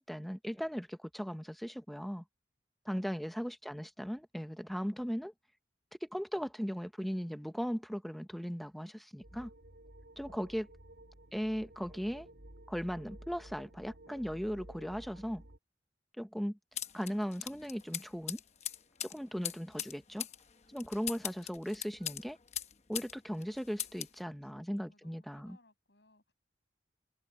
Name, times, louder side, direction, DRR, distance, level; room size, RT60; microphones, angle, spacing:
voice 1, 0.0-2.2 2.8-5.3 6.1-9.5 10.2-10.7 11.3-12.3 12.7-15.4 16.2-16.6 16.9-18.4 19.0-20.3 20.7-22.4 22.9-25.6, equal, ahead, 1.0 m, -38 dB
voice 2, 2.9-3.3 24.2-26.3, left 2 dB, 75° left, 7.2 m, -67 dB
sound 1, 9.2-15.6, right 1 dB, 90° right, 3.6 m, -53 dB
sound 2, 16.8-23.1 23.4-24.2, left 10 dB, 40° left, 1.0 m, -41 dB
head